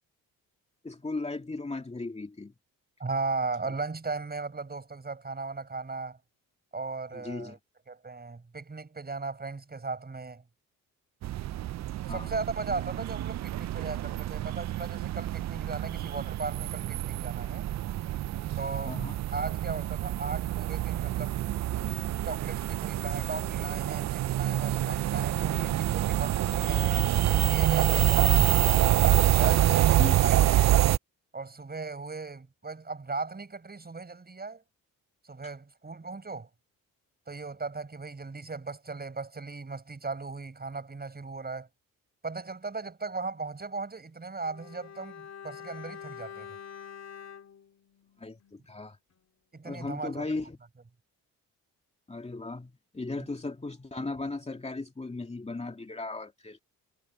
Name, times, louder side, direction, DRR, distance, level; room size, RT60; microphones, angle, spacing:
voice 1, 0.8-2.5 7.1-7.6 12.1-12.4 18.8-19.2 30.0-30.3 35.4-35.5 48.2-49.0 49.6-50.6 52.1-56.6, left 3 dB, 20° left, 2.4 m, -37 dB
voice 2, 3.0-6.2 6.7-7.6 7.9-10.4 12.1-17.7 18.6-19.0 19.3-21.4 22.3-28.9 29.3-30.7 31.3-34.6 35.2-36.5 37.3-41.7 42.2-46.5 49.5-50.2, right 3 dB, 25° right, 6.0 m, -37 dB
sound 1, 11.2-31.0, right 14 dB, 50° right, 0.5 m, -26 dB
Bowed string instrument, 44.4-48.8 49.1-49.3, left 8 dB, 50° left, 2.8 m, -46 dB
cardioid pair, 80°, 36 cm